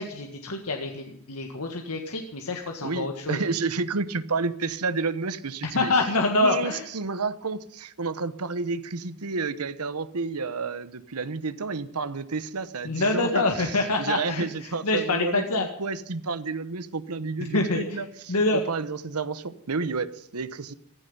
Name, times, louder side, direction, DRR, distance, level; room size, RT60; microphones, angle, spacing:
voice 1, 0.0-3.4 5.7-6.8 12.8-15.7 17.5-18.0 18.3-18.6, left 2 dB, 85° left, 3 dB, 1.8 m, -26 dB
voice 2, 2.8-5.9 6.4-15.4 15.8-20.7, right 4 dB, 85° right, 14 dB, 1.0 m, -30 dB
16.0 x 14.5 x 5.5 m, 0.73 s
head